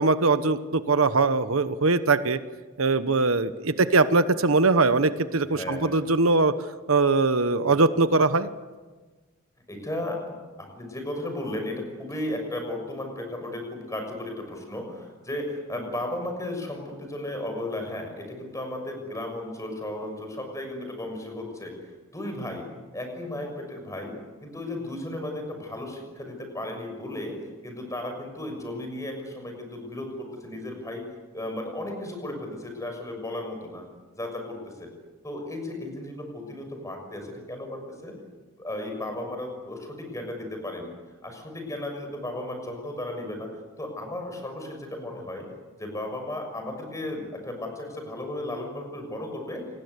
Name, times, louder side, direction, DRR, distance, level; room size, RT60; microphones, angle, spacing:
voice 1, 0.0-2.4 2.8-6.5 6.9-8.5, right 3 dB, 80° right, 12 dB, 1.1 m, -21 dB
voice 2, 5.5-6.0 7.6-7.7 9.7-21.7 22.1-22.6 22.9-24.1 24.4-31.0 31.3-33.8 34.1-34.9 35.2-38.1 38.6-40.9 41.2-43.5 43.8-45.5 45.8-49.6, left 1 dB, 15° left, 4 dB, 6.3 m, -35 dB
28.5 x 20.0 x 8.2 m, 1.3 s
head